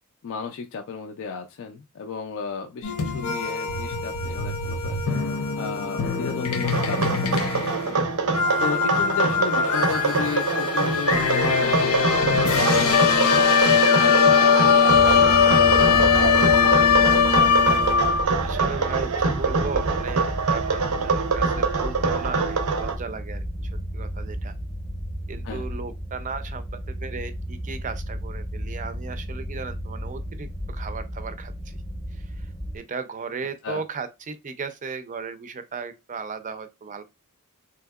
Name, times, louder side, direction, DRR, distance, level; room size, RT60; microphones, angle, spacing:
voice 1, 0.2-5.0 5.6-8.1 8.6-13.4 13.8-17.3 25.4-25.7 33.6-33.8, left 5 dB, 60° left, 0.4 m, -34 dB
sound 1, 2.8-18.3, left 6 dB, 85° left, 0.7 m, -21 dB
sound 2, 6.6-23.0, right 4 dB, 85° right, 0.6 m, -25 dB
sound 3, 14.9-32.8, equal, 20° left, 0.7 m, -33 dB
voice 2, 18.4-24.5 25.3-31.8 32.1-32.5 32.7-37.0, right 5 dB, 35° right, 0.4 m, -36 dB
3.5 x 2.8 x 2.3 m
head